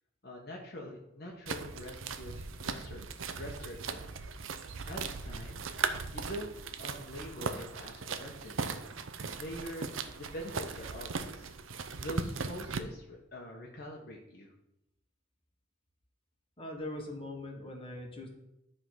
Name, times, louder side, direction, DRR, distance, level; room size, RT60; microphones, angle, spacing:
voice 1, 0.2-3.0 3.3-4.0 4.8-5.6 6.1-6.5 6.8-8.6 9.4-11.5 12.0-14.5, equal, 50° left, -1 dB, 1.2 m, -44 dB
sound 1, 1.5-12.8, right 5 dB, 80° right, 0.7 m, -38 dB
voice 2, 16.6-18.3, left 1 dB, 25° left, 2 dB, 1.5 m, -41 dB
10.5 x 3.8 x 6.2 m, 0.86 s
head